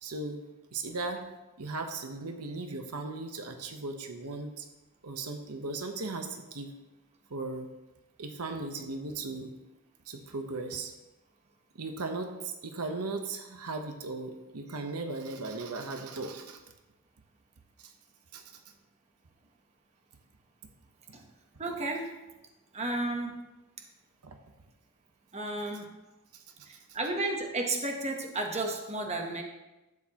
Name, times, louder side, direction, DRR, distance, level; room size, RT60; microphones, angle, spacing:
voice 1, 0.0-0.4 0.7-1.2 1.6-4.6 5.0-6.7 7.3-7.7 8.2-9.5 10.1-10.9 11.8-16.6 17.8-17.9 18.3-18.4 24.2-24.4, right 3 dB, 85° right, 5 dB, 1.0 m, -37 dB
voice 2, 21.6-22.1 22.7-23.4 25.3-25.9 26.7-29.4, right 2 dB, 30° right, 2 dB, 1.0 m, -33 dB
12.0 x 8.3 x 2.9 m, 1.0 s
head